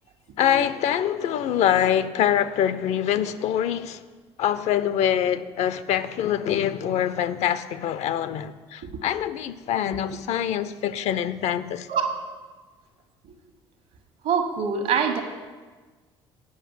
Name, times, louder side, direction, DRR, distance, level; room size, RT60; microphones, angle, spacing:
voice 1, 0.4-4.0 4.4-11.9, left 10 dB, 55° left, 0.5 m, -24 dB
voice 2, 11.9-12.2 14.2-15.2, right 6 dB, 65° right, 1.3 m, -24 dB
9.5 x 5.3 x 7.2 m
hypercardioid pair, 55°, 13 cm